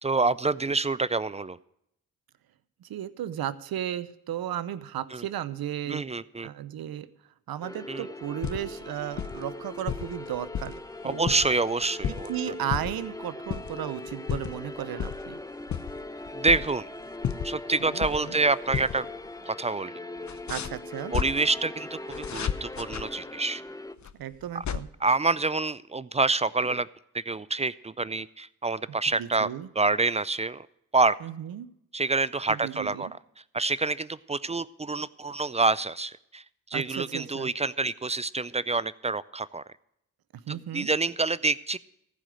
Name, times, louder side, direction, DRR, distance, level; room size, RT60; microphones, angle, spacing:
voice 1, 0.0-1.6 5.1-5.2 5.9-6.5 7.9-8.1 11.0-12.6 16.3-16.9 17.4-19.1 19.4-19.9 21.1-23.6 24.5-24.6 25.0-26.9 27.1-29.5 29.8-30.7 30.9-31.2 31.9-33.1 33.5-36.4 36.7-39.6 40.5-41.8, right 3 dB, 20° right, 18 dB, 0.4 m, -27 dB
voice 2, 2.8-6.0 6.4-7.1 7.5-11.4 12.1-15.4 17.8-18.4 20.5-21.1 24.2-24.9 29.2-29.7 31.2-31.7 32.5-33.1 36.7-37.5 40.3-40.9, right 11 dB, 70° right, 15 dB, 0.8 m, -35 dB
sound 1, 7.6-23.9, left 2 dB, 10° left, 0.8 m, -40 dB
sound 2, 8.2-8.8 9.1-9.5 9.9-10.8 11.1-12.3 12.7-13.1 13.5-13.8 14.1-14.6 15.0-15.2 15.6-16.9 17.2-18.4 18.7-19.0 19.3-19.4 20.2-21.3 22.1-23.0 24.0-24.8, left 8 dB, 45° left, 0.8 m, -32 dB
15.0 x 5.0 x 9.2 m, 0.76 s
supercardioid pair, 40°, 38 cm